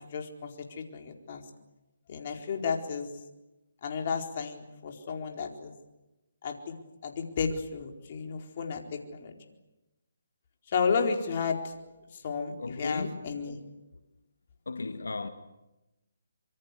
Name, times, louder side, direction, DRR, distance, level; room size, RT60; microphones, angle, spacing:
voice 1, 0.1-0.5 0.8-1.4 2.1-3.1 3.8-5.7 6.4-6.8 7.0-9.4 10.7-11.7 12.1-13.6, left 5 dB, 40° left, 4.3 m, -32 dB
voice 2, 12.4-13.2 14.7-15.3, left 3 dB, 90° left, 1.9 m, -35 dB
25.5 x 25.0 x 8.4 m
hypercardioid pair, 155°, 0 cm